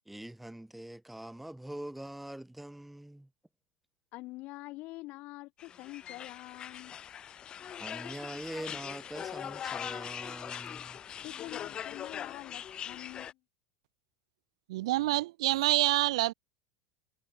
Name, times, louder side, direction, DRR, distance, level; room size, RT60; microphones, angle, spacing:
voice 1, 0.1-3.3 7.8-11.0, right 1 dB, 5° right, 1.4 m, -43 dB
voice 2, 4.1-6.9 11.2-13.4, left 20 dB, 55° left, 1.0 m, -45 dB
sound 1, 5.6-13.3, left 9 dB, 30° left, 0.4 m, -41 dB
voice 3, 14.7-16.3, right 17 dB, 85° right, 0.4 m, -27 dB
supercardioid pair, 125°, 3 cm